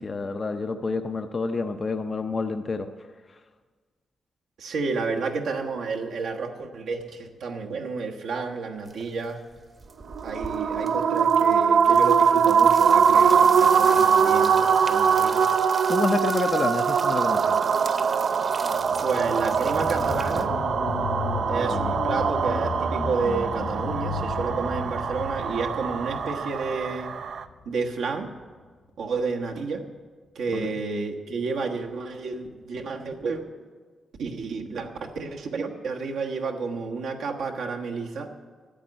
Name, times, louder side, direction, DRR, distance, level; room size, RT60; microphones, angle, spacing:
voice 1, 0.0-2.9 15.9-17.5 30.5-30.7, left 3 dB, 35° left, 7 dB, 0.5 m, -28 dB
voice 2, 4.6-9.4 10.2-15.5 19.0-20.5 21.5-27.1 27.6-28.3 29.0-29.8 30.3-33.5 34.2-38.3, right 4 dB, 80° right, 1 dB, 1.3 m, -31 dB
sound 1, 8.9-9.2 9.5-20.5, right 3 dB, 35° right, 0.9 m, -41 dB
sound 2, 10.1-27.4, right 6 dB, 65° right, 0.5 m, -22 dB
sound 3, 18.6-27.7 28.2-28.3, left 4 dB, 60° left, 1.0 m, -34 dB
10.0 x 7.7 x 9.7 m, 1.5 s
cardioid pair, 105°, 0 cm